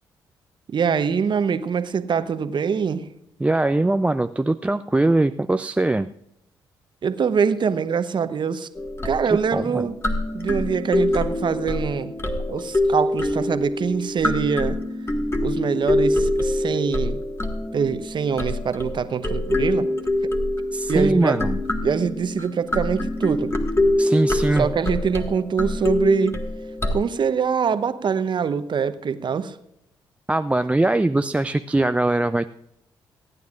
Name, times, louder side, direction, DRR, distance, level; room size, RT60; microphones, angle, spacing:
voice 1, 0.7-3.1 7.0-8.7 9.0-9.9 10.3-12.1 12.5-14.8 15.4-17.2 17.7-19.9 20.2-20.3 20.9-21.5 21.8-23.5 24.6-26.4 26.9-29.6, right 6 dB, 45° right, 11 dB, 0.9 m, -24 dB
voice 2, 3.4-6.1 9.3-9.9 20.7-21.6 24.0-24.7 30.3-32.5, right 2 dB, 10° right, 10 dB, 0.4 m, -21 dB
Kalimba wooden, 8.7-26.9, left 1 dB, 25° left, 1.7 m, -25 dB
26.0 x 9.3 x 2.5 m, 0.79 s
hypercardioid pair, 45°, 11 cm